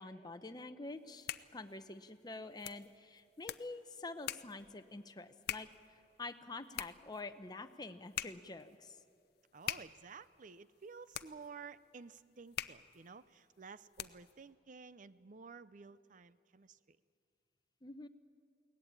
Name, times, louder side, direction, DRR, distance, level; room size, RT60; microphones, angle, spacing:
voice 1, 0.0-5.7 6.2-9.0 17.8-18.1, left 2 dB, 25° left, 8 dB, 0.8 m, -47 dB
sound 1, 0.9-14.4, left 11 dB, 60° left, 0.6 m, -47 dB
voice 2, 9.5-17.0, right 5 dB, 45° right, 15 dB, 0.6 m, -53 dB
22.0 x 18.0 x 8.7 m, 2.4 s
head